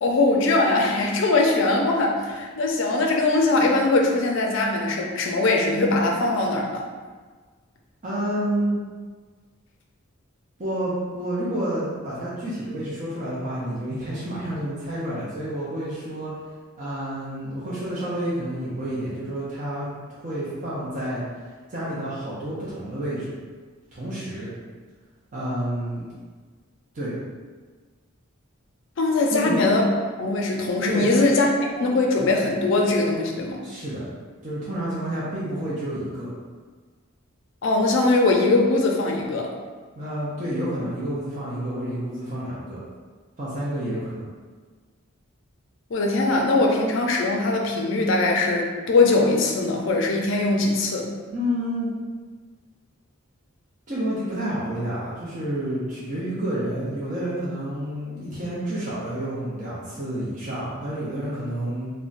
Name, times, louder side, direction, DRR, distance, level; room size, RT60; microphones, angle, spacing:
voice 1, 0.0-6.8 29.0-29.9 30.2-31.5 31.8-33.6 37.6-39.5 45.9-51.1, left 2 dB, 60° left, 1 dB, 0.4 m, -21 dB
voice 2, 8.0-8.7 10.6-16.3 16.8-19.9 20.1-21.2 21.7-23.3 23.9-24.5 25.3-26.1 26.9-27.2 29.3-29.6 30.9-31.1 33.6-34.1 34.4-36.3 39.9-42.8 43.4-44.3 51.3-51.9 53.9-61.9, right 1 dB, 35° right, -9 dB, 0.5 m, -29 dB
2.4 x 2.1 x 3.8 m, 1.5 s
head